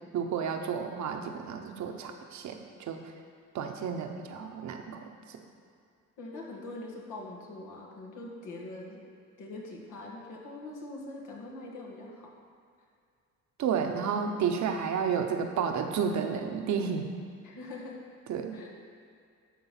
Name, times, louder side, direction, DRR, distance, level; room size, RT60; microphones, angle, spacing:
voice 1, 0.1-3.0 3.5-5.4 13.6-17.1 18.3-18.6, right 6 dB, 70° right, 4 dB, 0.9 m, -31 dB
voice 2, 6.2-9.0 9.4-12.3 17.4-18.0 18.5-18.8, left 2 dB, 85° left, -1 dB, 1.7 m, -43 dB
11.5 x 3.9 x 5.7 m, 2.3 s
cardioid pair, 90°, 30 cm